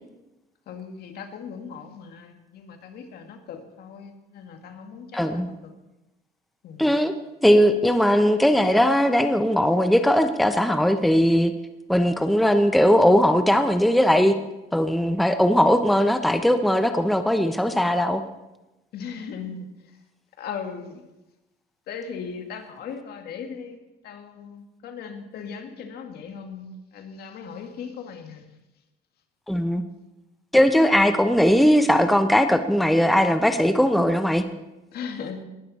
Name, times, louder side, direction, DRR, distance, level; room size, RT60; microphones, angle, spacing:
voice 1, 0.7-5.7 6.6-7.0 18.9-19.7 20.4-21.0 21.9-28.5 34.9-35.4, left 6 dB, 70° left, 5 dB, 2.1 m, -38 dB
voice 2, 5.1-5.5 6.8-7.1 7.4-11.5 11.9-14.4 14.7-18.2 29.5-29.8 30.5-34.5, equal, ahead, 8 dB, 0.9 m, -19 dB
19.0 x 12.5 x 4.2 m, 1.0 s
cardioid pair, 110°, 17 cm